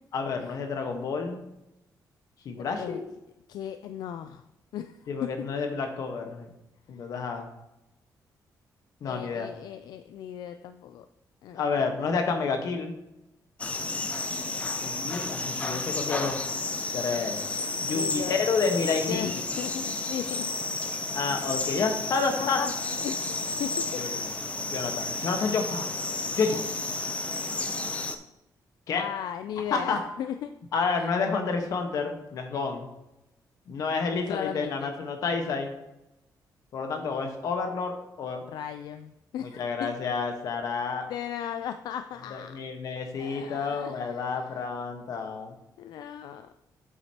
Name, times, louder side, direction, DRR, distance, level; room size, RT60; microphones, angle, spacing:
voice 1, 0.1-1.4 2.4-3.0 5.1-6.5 6.9-7.5 9.0-9.5 11.5-12.9 14.8-16.4 16.9-17.4 17.8-19.2 21.1-22.6 24.0-24.2 24.7-25.9 26.4-26.7 28.9-29.0 29.7-30.0 30.7-32.9 33.7-35.7 36.7-38.4 39.4-41.0 42.3-45.5, left 4 dB, 55° left, 4 dB, 1.2 m, -29 dB
voice 2, 2.6-3.0 3.5-4.4 4.7-5.5 9.1-11.0 11.4-11.8 17.9-18.8 19.1-20.4 22.4-22.7 23.0-23.3 23.6-24.0 25.1-25.2 28.9-30.5 31.0-31.1 34.1-34.9 38.5-39.9 41.1-42.6 43.1-44.4 45.8-46.5, left 9 dB, 75° left, 9 dB, 0.4 m, -37 dB
sound 1, 13.6-28.2, left 3 dB, 20° left, 0.5 m, -32 dB
8.0 x 7.6 x 2.9 m, 0.90 s
wide cardioid pair, 175°, 7 cm